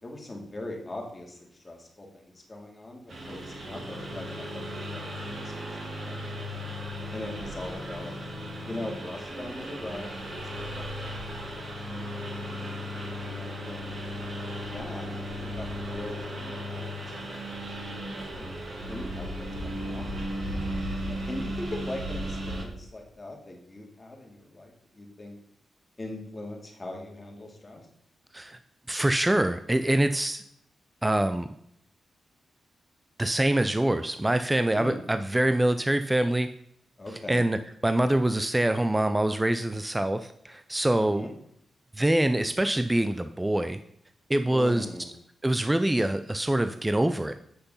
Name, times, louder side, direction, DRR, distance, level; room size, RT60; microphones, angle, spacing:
voice 1, 0.0-6.4 7.1-8.2 8.6-11.1 11.8-12.7 13.3-14.0 14.6-17.2 18.0-18.5 18.9-25.4 26.0-27.9 34.7-35.0 37.0-37.5 41.0-41.3 44.5-45.1, left 1 dB, 25° left, 1 dB, 2.6 m, -41 dB
Engine, 3.1-22.6, equal, 60° right, 3.1 m, -36 dB
voice 2, 28.9-30.4 31.0-31.5 33.2-36.5 37.3-41.3 41.9-43.8 44.3-44.9 45.4-47.3, right 1 dB, 15° right, 10 dB, 0.5 m, -25 dB
8.2 x 6.7 x 5.6 m, 0.71 s
cardioid pair, 90°, 0 cm